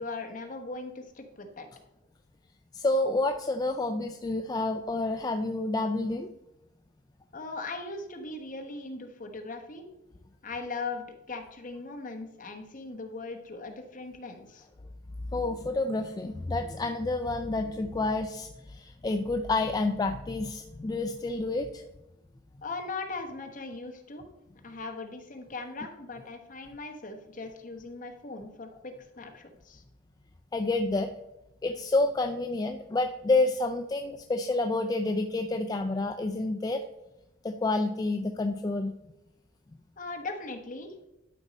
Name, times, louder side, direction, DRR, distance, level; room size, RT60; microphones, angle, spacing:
voice 1, 0.0-1.7 7.3-9.8 10.4-14.7 22.6-24.2 24.6-29.8 40.0-40.9, left 3 dB, 45° left, 4 dB, 1.1 m, -39 dB
voice 2, 2.7-6.3 15.3-21.8 30.5-31.1 31.6-36.8 37.4-38.9, left 2 dB, 20° left, 6 dB, 0.3 m, -29 dB
11.5 x 5.2 x 4.1 m, 0.92 s
head